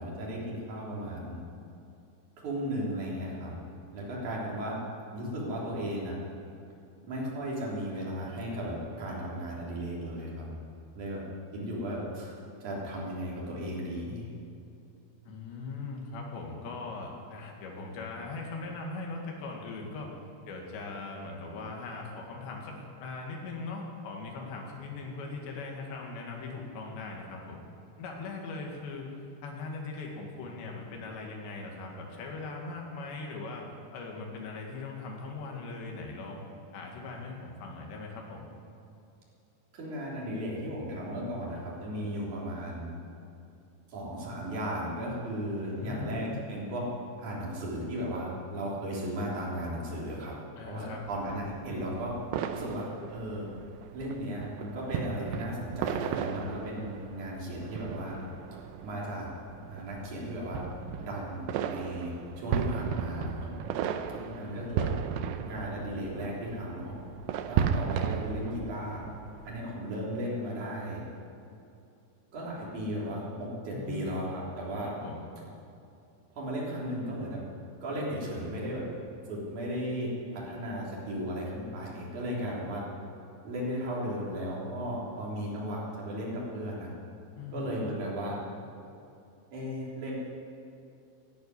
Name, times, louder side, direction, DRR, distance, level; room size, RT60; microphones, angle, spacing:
voice 1, 0.0-1.4 2.4-3.5 3.9-4.8 5.1-6.2 7.0-10.5 10.9-11.2 11.5-12.3 12.6-14.2 39.7-43.0 43.9-46.9 47.2-50.3 50.6-52.1 52.5-53.5 53.9-58.2 58.8-59.3 59.7-60.6 61.0-62.1 62.4-63.5 64.4-64.9 65.4-67.0 67.5-69.0 69.4-71.0 72.3-74.9 76.3-77.4 77.8-78.9 79.3-82.8 83.4-86.9 87.5-88.4 89.5-90.2, equal, 45° right, -5 dB, 4.7 m, -35 dB
voice 2, 15.2-20.1 20.5-27.6 28.0-29.1 29.4-33.7 33.9-36.4 36.7-38.5 45.6-46.3 50.6-51.0 64.1-64.9 73.7-74.2 74.8-75.3 87.4-87.7, left 3 dB, 80° left, 0 dB, 4.2 m, -40 dB
sound 1, 51.0-69.6, right 8 dB, 85° right, 2.2 m, -35 dB
12.5 x 11.5 x 9.7 m, 2.6 s
omnidirectional pair, 4.9 m